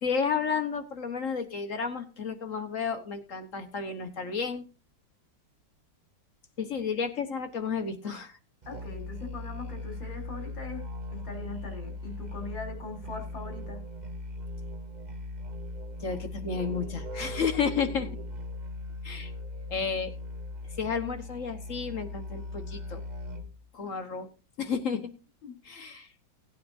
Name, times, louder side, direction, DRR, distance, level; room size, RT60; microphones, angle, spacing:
voice 1, 0.0-4.6 6.6-8.4 16.0-18.1 19.0-19.3 19.7-20.1 20.8-23.0 23.7-24.3 24.6-25.1 25.6-26.1, left 6 dB, 50° left, 7 dB, 1.4 m, -32 dB
Musical instrument, 8.6-23.6, left 2 dB, 35° right, 0.8 m, -39 dB
voice 2, 8.7-10.8 11.1-13.8 25.4-25.5, left 3 dB, 90° left, 1 dB, 3.8 m, -41 dB
18.0 x 9.4 x 2.6 m, 0.31 s
omnidirectional pair, 2.0 m